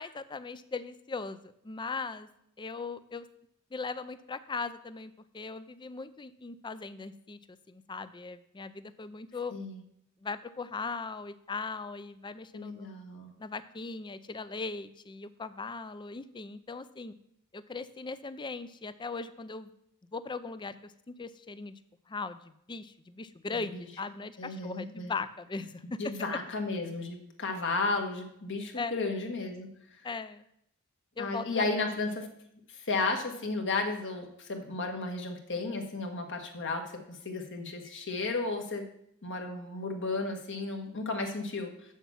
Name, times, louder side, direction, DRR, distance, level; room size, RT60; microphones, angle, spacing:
voice 1, 0.0-2.3 2.6-3.3 3.7-9.5 10.2-12.9 13.4-17.1 17.5-19.7 20.1-21.8 22.1-26.1 28.8-29.1 30.0-30.4 31.2-32.0, left 4 dB, 20° left, 14 dB, 0.4 m, -39 dB
voice 2, 12.5-13.3 23.7-23.9 24.4-25.1 25.8-29.7 31.2-32.3 32.8-38.8 39.2-41.7, left 3 dB, 60° left, 4 dB, 1.6 m, -33 dB
7.2 x 7.2 x 7.0 m, 0.74 s
head